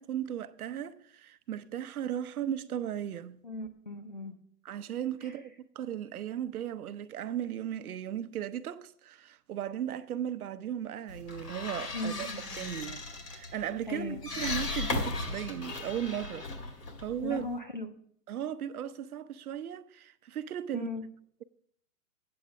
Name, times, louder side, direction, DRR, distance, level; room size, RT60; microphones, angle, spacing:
voice 1, 0.0-3.4 4.6-12.3 12.5-16.5 17.0-17.4 18.3-20.9, right 10 dB, 65° right, 0.7 m, -36 dB
voice 2, 3.4-4.4 5.2-5.4 11.9-12.4 13.4-13.5 13.9-14.2 17.2-18.0 20.7-21.1, left 2 dB, 35° left, 0.4 m, -38 dB
sound 1, 11.1-17.6, left 3 dB, 90° left, 2.4 m, -37 dB
8.7 x 6.8 x 6.2 m
hypercardioid pair, 165°, 47 cm